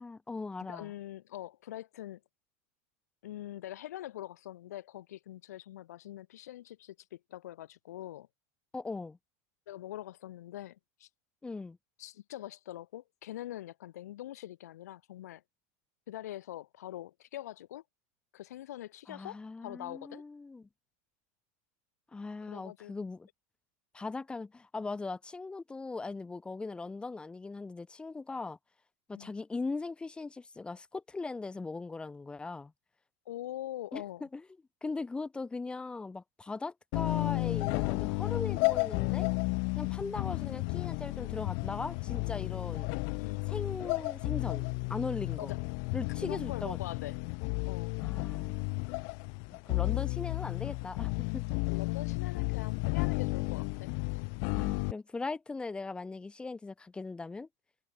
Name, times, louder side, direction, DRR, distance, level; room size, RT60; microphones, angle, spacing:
voice 1, 0.0-0.9 8.7-9.2 11.4-11.8 19.1-20.7 22.1-23.3 23.9-28.6 29.1-32.7 33.9-34.4 34.8-39.3 39.8-42.9 43.5-45.5 45.9-46.8 48.0-48.7 49.7-51.6 54.5-57.5, left 3 dB, 10° left, 4.4 m, -39 dB
voice 2, 0.7-2.2 3.2-8.3 9.7-11.1 12.0-15.4 16.1-17.8 18.3-20.2 22.5-22.9 29.1-29.3 33.2-34.2 43.2-43.4 45.4-45.6 46.2-47.2 47.6-47.9 51.7-53.9, left 13 dB, 85° left, 4.8 m, -43 dB
sound 1, 36.9-54.9, left 40 dB or more, 60° left, 0.7 m, -33 dB
supercardioid pair, 130°, 8 cm